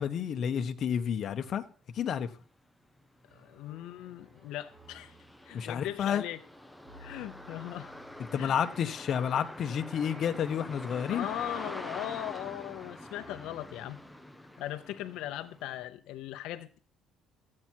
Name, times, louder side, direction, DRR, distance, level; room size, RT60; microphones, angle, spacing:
voice 1, 0.0-1.6 1.9-2.3 5.5-6.2 8.3-11.3, left 8 dB, 45° left, 0.9 m, -30 dB
sound 1, 2.4-2.5 3.0-15.8, left 1 dB, ahead, 0.7 m, -46 dB
voice 2, 3.3-5.2 5.4-6.4 7.0-7.9 8.4-8.6 11.1-14.0 14.6-16.8, left 13 dB, 80° left, 0.7 m, -39 dB
sound 2, 3.3-14.1, right 1 dB, 30° right, 4.2 m, -59 dB
14.0 x 8.6 x 4.5 m
cardioid pair, 160°, 0 cm